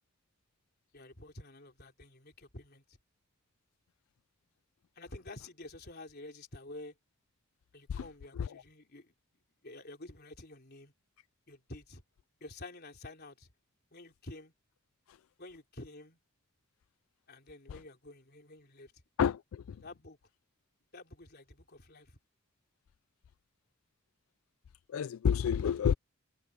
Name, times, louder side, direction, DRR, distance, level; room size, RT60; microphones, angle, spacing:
voice 1, 0.9-3.0 5.0-7.0 7.7-9.1 9.6-10.9 11.5-12.0 12.4-13.5 13.9-14.5 15.4-16.2 17.3-18.9 19.8-20.2 20.9-22.2, left 2 dB, 50° left, 3.8 m, -49 dB
voice 2, 19.2-19.6 24.9-25.9, left 7 dB, 80° left, 0.4 m, -29 dB
head